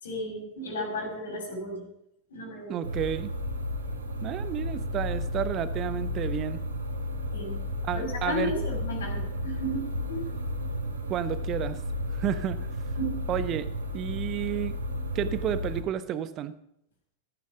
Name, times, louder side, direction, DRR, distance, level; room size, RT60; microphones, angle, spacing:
voice 1, 0.0-1.8 2.3-2.8 7.3-7.6 7.9-10.2 13.0-13.2, equal, 65° left, -1 dB, 5.7 m, -34 dB
voice 2, 2.7-3.3 4.2-6.6 7.8-8.5 11.1-11.8 12.1-12.7 13.3-13.7 13.9-14.8 15.1-16.5, right 10 dB, 35° right, 13 dB, 1.1 m, -31 dB
sound 1, 2.8-15.8, left 1 dB, 70° right, 2.7 m, -33 dB
15.0 x 14.0 x 5.1 m, 0.75 s
figure-of-eight pair, 90°, 0 cm